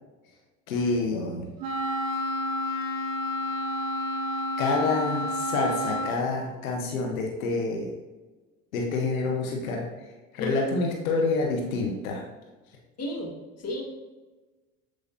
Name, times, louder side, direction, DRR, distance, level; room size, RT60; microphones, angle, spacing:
voice 1, 0.7-1.5 4.6-7.9 8.7-9.9 10.3-12.2, left 3 dB, 90° left, 0 dB, 1.0 m, -27 dB
Wind instrument woodwind instrument, 1.6-6.2, left 1 dB, 60° right, 1.8 m, -30 dB
voice 2, 13.0-13.8, left 1 dB, 40° left, -1 dB, 1.8 m, -33 dB
7.4 x 4.8 x 2.7 m, 1.2 s
hypercardioid pair, 80°, 40 cm